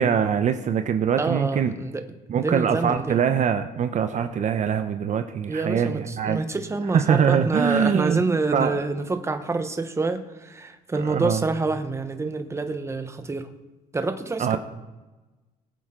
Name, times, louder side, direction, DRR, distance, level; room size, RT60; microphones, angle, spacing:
voice 1, 0.0-1.7 2.3-6.4 6.9-8.2 8.5-8.8 11.0-11.4 14.4-14.6, right 7 dB, 45° right, 8 dB, 0.8 m, -23 dB
voice 2, 1.2-2.1 2.4-3.2 5.5-13.5 13.9-14.6, right 3 dB, 15° right, 8 dB, 1.1 m, -27 dB
21.0 x 8.1 x 3.8 m, 1.1 s
cardioid pair, 110°, 17 cm